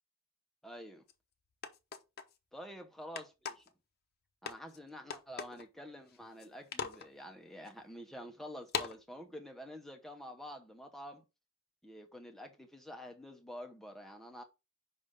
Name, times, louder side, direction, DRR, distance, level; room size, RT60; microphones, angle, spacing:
voice 1, 0.6-1.0 2.5-3.6 4.4-11.2 11.8-14.4, equal, ahead, 0.7 m, -48 dB
sound 1, 1.1-1.2 1.6-2.3 3.2-3.7 4.5-4.8 5.1-5.6 6.1-6.5 6.7-7.1 7.7-7.8 8.7-9.0, left 6 dB, 45° left, 0.7 m, -39 dB
5.5 x 3.4 x 5.0 m
head